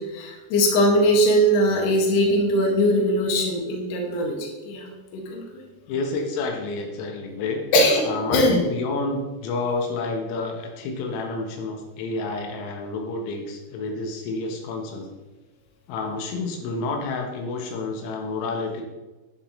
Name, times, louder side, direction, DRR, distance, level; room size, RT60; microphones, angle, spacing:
voice 1, 0.0-4.8 5.1-5.4 7.7-8.0 8.3-8.6, equal, 60° left, 0 dB, 3.5 m, -20 dB
voice 2, 5.9-7.6 8.1-15.1 15.9-18.8, left 3 dB, 85° left, 2 dB, 3.8 m, -29 dB
11.5 x 10.0 x 3.2 m, 1.2 s
omnidirectional pair, 5.9 m